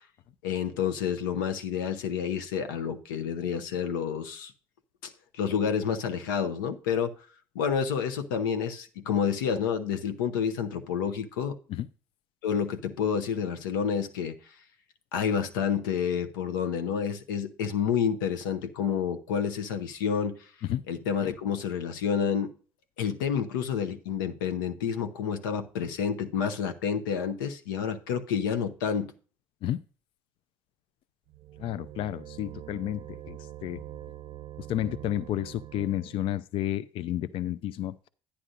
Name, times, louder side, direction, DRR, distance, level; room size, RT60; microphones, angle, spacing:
voice 1, 0.4-4.5 5.0-7.2 7.5-11.5 12.4-14.4 15.1-20.4 20.9-22.5 23.0-29.1, left 7 dB, 85° left, 0.8 m, -29 dB
sound 1, 31.3-36.4, right 13 dB, 60° right, 0.5 m, -44 dB
voice 2, 31.6-33.8 34.7-37.9, left 12 dB, 60° left, 0.4 m, -31 dB
10.0 x 9.8 x 2.6 m
hypercardioid pair, 65°, 10 cm